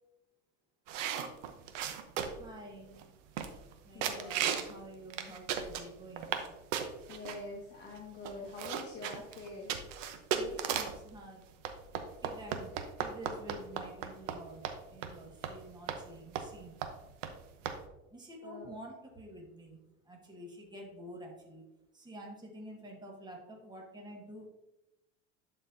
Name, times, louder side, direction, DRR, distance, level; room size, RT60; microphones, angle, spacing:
sound 1, 0.9-2.5 3.0-3.1 3.4-3.7 4.0-4.7 5.1-6.5 6.7-7.4 8.0-8.1 8.2-11.0 11.6-14.4 14.6-14.8 15.0-15.1 15.4-15.6 15.9-16.0 16.4-16.6 16.8-16.9 17.2-17.3 17.7-17.8, right 8 dB, 80° right, 0.9 m, -35 dB
voice 1, 2.4-3.0 3.8-6.4 10.3-11.4 12.2-16.8 18.1-21.6 21.9-24.5, right 1 dB, 10° right, -1 dB, 1.6 m, -49 dB
voice 2, 3.9-4.4 7.1-9.8 18.4-18.7, left 3 dB, 30° left, -1 dB, 1.2 m, -45 dB
11.0 x 4.3 x 2.7 m, 0.95 s
supercardioid pair, 105°, 37 cm